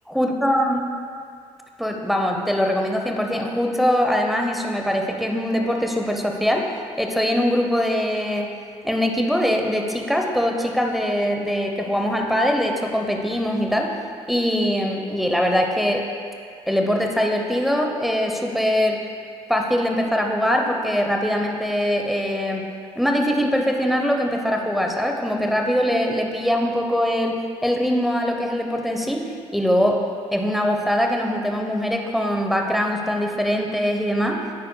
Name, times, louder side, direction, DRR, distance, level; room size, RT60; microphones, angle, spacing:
voice 1, 0.1-0.8 1.8-6.7 7.0-8.5 8.8-13.9 14.3-16.1 16.7-19.0 19.5-22.7 23.0-29.3 29.5-30.0 30.3-34.4, equal, ahead, 2 dB, 0.9 m, -22 dB
9.8 x 9.3 x 2.3 m, 2.2 s
cardioid pair, 80°, 12 cm